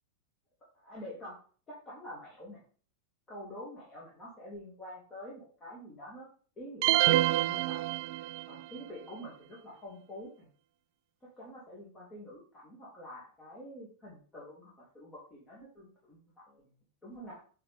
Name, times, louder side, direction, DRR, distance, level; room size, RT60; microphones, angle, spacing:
voice 1, 0.7-1.4 1.7-2.6 3.3-6.3 6.6-8.0 8.5-10.5 11.2-16.6 17.0-17.4, equal, 20° left, -6 dB, 2.5 m, -47 dB
sound 1, 6.8-8.6, right 17 dB, 45° right, 0.3 m, -27 dB
8.5 x 4.3 x 3.6 m, 0.41 s
figure-of-eight pair, 90°, 0 cm